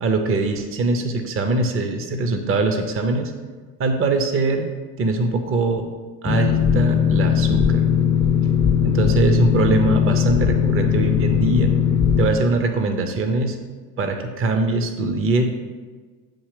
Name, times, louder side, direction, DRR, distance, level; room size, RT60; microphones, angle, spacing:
voice 1, 0.0-3.3 3.8-4.7 5.0-5.9 6.2-7.8 8.8-11.8 12.2-13.6 14.0-15.6, right 3 dB, 25° right, 6 dB, 0.7 m, -22 dB
Boat Water vehicle, 6.2-12.3, left 8 dB, 10° left, 0.5 m, -19 dB
8.7 x 2.9 x 4.9 m, 1.4 s
hypercardioid pair, 90°, 48 cm